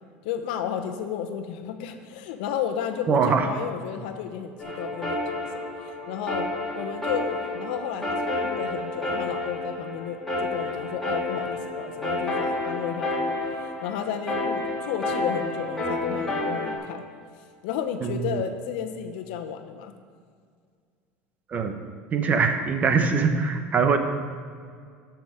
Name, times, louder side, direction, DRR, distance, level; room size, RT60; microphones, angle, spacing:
voice 1, 0.2-6.5 6.7-13.4 13.6-17.0 17.6-19.9, left 8 dB, 80° left, 6 dB, 1.0 m, -33 dB
voice 2, 3.1-3.5 18.0-18.4 21.5-21.8 22.1-24.0, right 5 dB, 30° right, 7 dB, 1.0 m, -22 dB
sound 1, 4.6-16.8, left 2 dB, 5° left, 3.1 m, -30 dB
14.0 x 6.1 x 5.1 m, 2.1 s
supercardioid pair, 130°, 5 cm